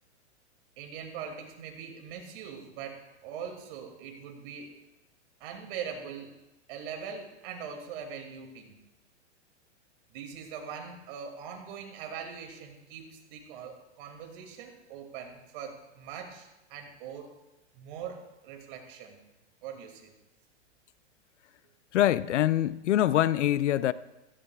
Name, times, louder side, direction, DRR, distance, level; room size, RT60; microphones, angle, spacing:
voice 1, 0.8-4.8 5.4-6.3 6.7-8.8 10.1-17.3 17.7-19.2 19.6-20.1, right 7 dB, 50° right, 3 dB, 2.6 m, -42 dB
voice 2, 21.9-23.9, left 12 dB, 85° left, 17 dB, 0.6 m, -24 dB
16.0 x 14.5 x 2.4 m, 1.0 s
hypercardioid pair, 135°, 35 cm